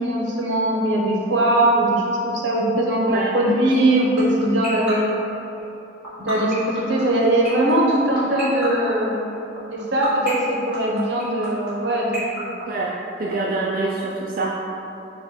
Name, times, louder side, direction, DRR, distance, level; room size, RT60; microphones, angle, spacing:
voice 1, 0.0-5.1 6.2-9.3 9.7-12.4, right 1 dB, 75° right, -3 dB, 0.8 m, -20 dB
sound 1, 3.7-13.3, right 1 dB, 5° right, 1.2 m, -31 dB
voice 2, 12.7-14.5, right 3 dB, 50° right, -4 dB, 0.3 m, -25 dB
5.1 x 2.3 x 4.3 m, 2.9 s
head